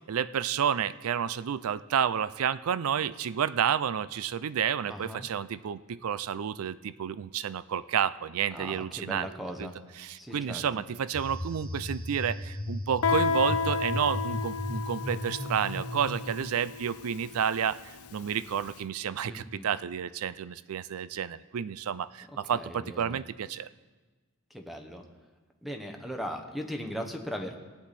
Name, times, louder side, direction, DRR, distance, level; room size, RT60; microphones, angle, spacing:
voice 1, 0.1-9.3 9.6-9.7 10.0-17.8 18.1-23.7, right 8 dB, 75° right, 16 dB, 0.4 m, -30 dB
voice 2, 4.9-5.3 8.5-9.7 10.2-10.8 19.2-19.7 22.5-23.2 24.5-25.0 25.6-27.6, equal, ahead, 4 dB, 1.0 m, -38 dB
sound 1, 11.1-16.2, left 1 dB, 30° right, 4.7 m, -36 dB
Guitar, 13.0-18.5, left 5 dB, 85° left, 0.5 m, -32 dB
18.0 x 8.3 x 4.2 m, 1.3 s
head